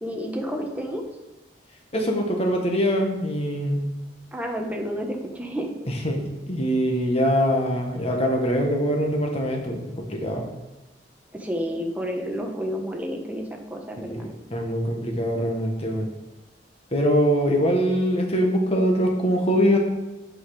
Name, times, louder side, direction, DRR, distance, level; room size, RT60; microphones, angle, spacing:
voice 1, 0.0-1.0 4.3-5.7 11.3-14.3, equal, 10° right, 2 dB, 1.1 m, -30 dB
voice 2, 1.9-3.9 6.0-10.4 14.0-16.1 16.9-19.8, equal, 35° left, 2 dB, 1.5 m, -23 dB
8.6 x 5.6 x 5.0 m, 1.0 s
head